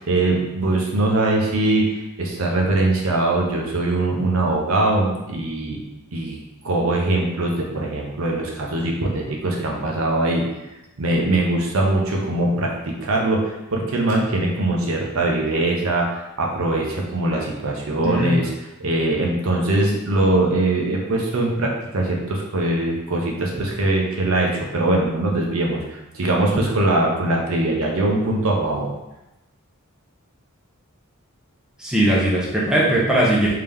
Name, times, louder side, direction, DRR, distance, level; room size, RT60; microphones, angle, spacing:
voice 1, 0.0-5.8 6.1-6.4 6.6-10.5 11.0-18.5 18.8-28.9, right 2 dB, 70° right, -1 dB, 0.7 m, -22 dB
voice 2, 18.0-18.4 31.8-33.5, right 1 dB, 5° right, -5 dB, 0.7 m, -19 dB
3.6 x 2.8 x 3.4 m, 0.95 s
head